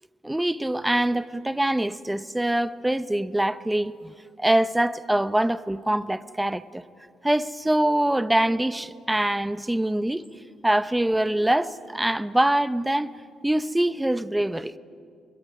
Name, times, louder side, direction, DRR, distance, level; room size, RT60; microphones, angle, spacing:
voice 1, 0.2-6.8 7.2-10.2 10.6-13.1 13.4-14.7, right 1 dB, 10° right, 0.7 m, -24 dB
23.5 x 21.0 x 9.7 m
cardioid pair, 90°, 0 cm